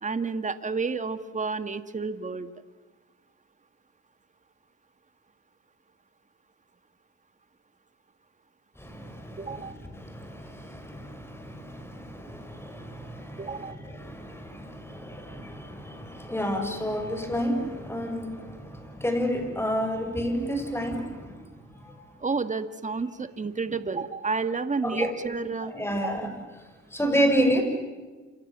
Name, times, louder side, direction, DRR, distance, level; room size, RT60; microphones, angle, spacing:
voice 1, 0.0-2.5 9.4-9.8 13.4-13.8 22.2-26.3, right 4 dB, 25° right, 10 dB, 1.8 m, -31 dB
voice 2, 8.8-21.4 24.8-25.1 25.7-26.3 26.9-27.6, equal, 10° left, 5 dB, 6.7 m, -30 dB
28.0 x 27.5 x 7.6 m, 1.3 s
cardioid pair, 90°, 30 cm